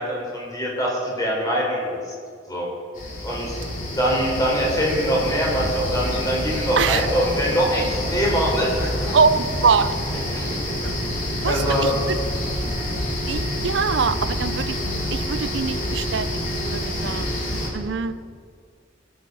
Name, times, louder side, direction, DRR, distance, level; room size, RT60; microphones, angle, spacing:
voice 1, 0.0-2.1 2.5-2.7 3.2-3.6 4.0-9.1 10.3-10.6 10.8-10.9 11.4-11.9 17.0-17.2, equal, 20° left, -4 dB, 4.0 m, -23 dB
sound 1, 3.0-17.7, left 1 dB, 45° left, 2.9 m, -27 dB
voice 2, 9.1-10.3 10.8-10.9 11.4-12.2 13.3-14.8 15.1-17.3 17.7-18.2, right 5 dB, 65° right, 14 dB, 0.5 m, -23 dB
20.0 x 8.2 x 5.4 m, 2.1 s
head